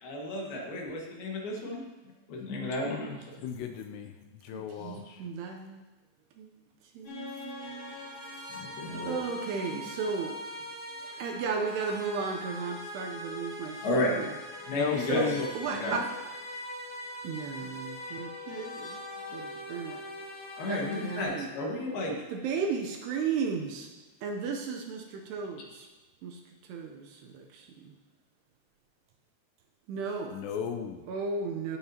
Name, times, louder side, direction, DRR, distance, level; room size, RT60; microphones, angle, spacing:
voice 1, 0.0-1.8 2.3-3.3 8.5-9.2 9.7-9.9 13.8-14.3 14.7-16.1 20.6-22.2, left 1 dB, 65° left, -2 dB, 3.4 m, -33 dB
voice 2, 3.4-4.1 4.4-5.2 14.7-15.5 30.3-31.0, left 8 dB, 80° left, 6 dB, 2.7 m, -34 dB
voice 3, 4.5-5.8 6.4-6.5 7.0-7.9 9.1-10.3 11.2-14.0 15.1-15.3 15.6-16.0 17.2-19.0 19.3-20.0 20.7-21.5 22.3-23.9 24.2-25.9 26.2-26.3 26.7-27.0 29.9-30.3 31.1-31.8, right 5 dB, 75° right, 2 dB, 2.6 m, -34 dB
sound 1, 7.0-21.2, left 1 dB, 45° left, 4.4 m, -41 dB
18.0 x 8.6 x 2.9 m, 1.2 s
omnidirectional pair, 5.2 m